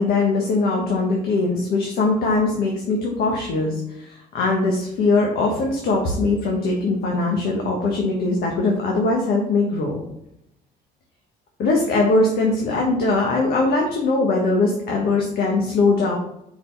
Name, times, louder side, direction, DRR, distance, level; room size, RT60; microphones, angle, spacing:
voice 1, 0.0-10.0 11.6-16.2, left 3 dB, 65° left, 0 dB, 1.3 m, -21 dB
5.1 x 4.2 x 5.4 m, 0.79 s
cardioid pair, 110°, 17 cm